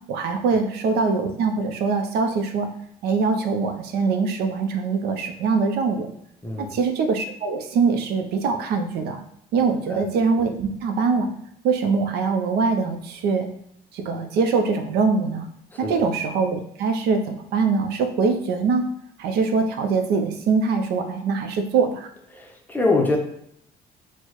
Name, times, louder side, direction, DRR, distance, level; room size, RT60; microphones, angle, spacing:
voice 1, 0.1-2.7 3.0-6.1 6.6-9.2 9.5-11.3 11.6-13.5 13.9-15.5 15.8-18.9 19.2-22.1, right 4 dB, 75° right, 5 dB, 0.5 m, -23 dB
voice 2, 6.4-6.8 9.6-10.0 15.7-15.9 22.3-23.2, left 2 dB, 10° left, 1 dB, 0.6 m, -25 dB
4.4 x 2.1 x 2.9 m, 0.72 s
cardioid pair, 110°, 17 cm